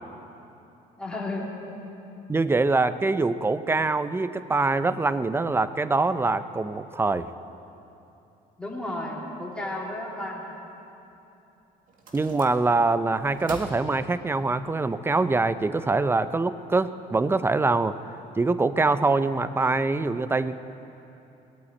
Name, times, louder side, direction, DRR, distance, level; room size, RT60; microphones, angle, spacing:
voice 1, 1.0-1.5 8.6-10.4, left 1 dB, 5° left, -4 dB, 2.8 m, -33 dB
voice 2, 2.3-7.3 12.1-18.0 18.4-20.6, right 3 dB, 15° right, 13 dB, 0.5 m, -24 dB
sound 1, 11.1-11.2 11.9-12.9 13.2-14.6, right 3 dB, 55° right, 1.9 m, -43 dB
19.5 x 8.4 x 8.8 m, 3.0 s
cardioid pair, 110°, 17 cm